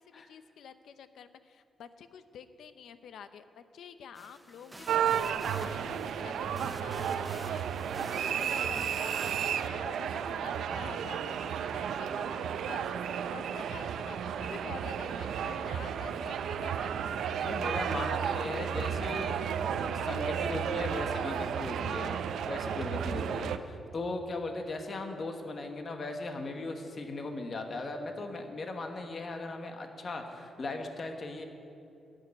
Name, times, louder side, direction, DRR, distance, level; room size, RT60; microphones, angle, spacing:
voice 1, 0.0-12.9 13.3-17.1, left 7 dB, 75° left, 11 dB, 0.6 m, -49 dB
sound 1, 4.1-9.7, right 1 dB, 10° right, 0.5 m, -50 dB
sound 2, 4.9-23.6, right 8 dB, 80° right, 0.5 m, -33 dB
sound 3, 14.6-22.5 22.7-22.9, right 2 dB, 15° left, 1.7 m, -50 dB
voice 2, 17.4-19.4 19.6-31.4, left 2 dB, 35° left, 5 dB, 1.1 m, -38 dB
12.5 x 6.5 x 9.6 m, 2.8 s
wide cardioid pair, 160°, 0 cm